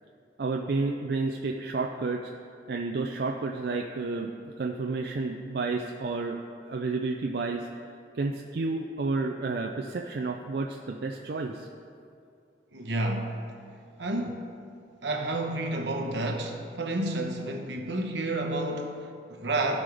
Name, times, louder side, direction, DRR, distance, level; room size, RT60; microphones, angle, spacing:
voice 1, 0.4-2.2 2.7-7.7 8.1-11.7, right 3 dB, 60° right, 1 dB, 0.4 m, -31 dB
voice 2, 12.7-13.4 14.0-14.5 15.0-19.8, right 2 dB, 80° right, 3 dB, 1.0 m, -30 dB
16.0 x 5.3 x 3.4 m, 2.4 s
head